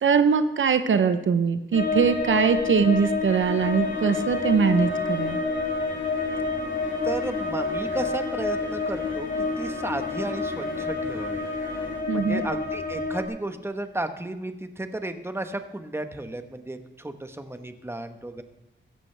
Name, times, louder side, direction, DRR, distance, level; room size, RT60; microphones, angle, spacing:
voice 1, 0.0-5.4 12.1-12.4, right 6 dB, 75° right, 10 dB, 0.8 m, -22 dB
sound 1, 1.7-13.3, left 3 dB, 50° left, 2.7 m, -29 dB
sound 2, 3.3-12.0, left 5 dB, 70° left, 1.9 m, -40 dB
voice 2, 7.0-11.5 12.1-18.4, right 1 dB, 10° right, 8 dB, 1.2 m, -33 dB
15.5 x 14.0 x 3.4 m, 0.94 s
cardioid pair, 70°, 20 cm